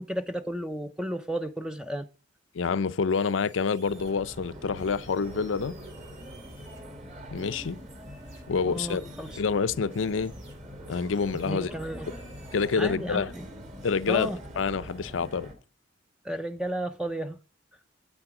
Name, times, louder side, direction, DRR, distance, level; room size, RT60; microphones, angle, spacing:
voice 1, 0.0-2.1 8.6-9.4 11.5-12.1 12.8-13.5 14.1-14.4 16.2-17.4, right 1 dB, 5° right, 0.4 m, -33 dB
voice 2, 2.5-5.8 7.3-7.8 8.5-9.1 9.4-10.3 10.9-11.7 12.5-13.3 13.8-15.5, left 5 dB, 80° left, 0.5 m, -27 dB
sound 1, 3.1-4.1 4.7-6.8 7.3-9.4 9.9-10.5 11.1-11.5 12.0-12.9, right 3 dB, 85° right, 5.3 m, -57 dB
sound 2, 3.9-15.5, equal, 40° right, 2.4 m, -43 dB
8.9 x 8.3 x 4.8 m
head